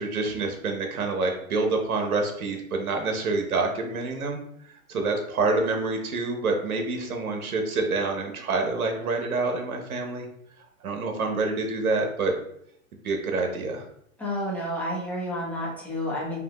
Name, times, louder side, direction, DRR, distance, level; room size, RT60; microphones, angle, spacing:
voice 1, 0.0-4.4 4.9-10.3 10.8-12.4 13.0-13.9, right 3 dB, 90° right, 3 dB, 1.1 m, -27 dB
voice 2, 14.2-16.4, equal, 5° left, -6 dB, 1.1 m, -30 dB
4.8 x 2.8 x 3.0 m, 0.70 s
hypercardioid pair, 140°, 42 cm